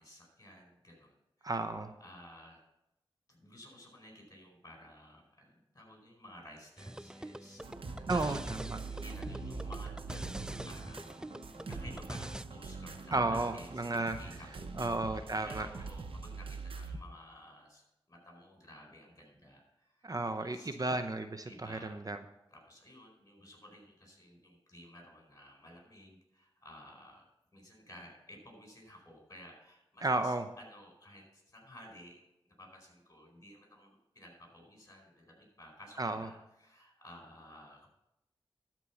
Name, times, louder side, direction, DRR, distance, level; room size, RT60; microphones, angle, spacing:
voice 1, 0.0-1.5 2.0-2.6 3.3-7.7 8.0-8.6 8.9-11.3 11.7-20.1 20.4-20.8 21.5-22.0 22.5-27.3 27.5-32.2 32.4-37.9, left 1 dB, 35° left, 1 dB, 4.5 m, -54 dB
voice 2, 1.4-1.9 8.1-8.8 13.1-14.2 14.8-15.7 20.0-22.2 30.0-30.5 36.0-36.3, right 2 dB, 40° right, 9 dB, 0.7 m, -33 dB
sound 1, 6.8-12.4, right 1 dB, 10° right, 0.3 m, -44 dB
sound 2, 7.6-17.0, right 4 dB, 75° right, 0.9 m, -44 dB
12.5 x 4.6 x 7.0 m, 0.86 s
cardioid pair, 45°, 9 cm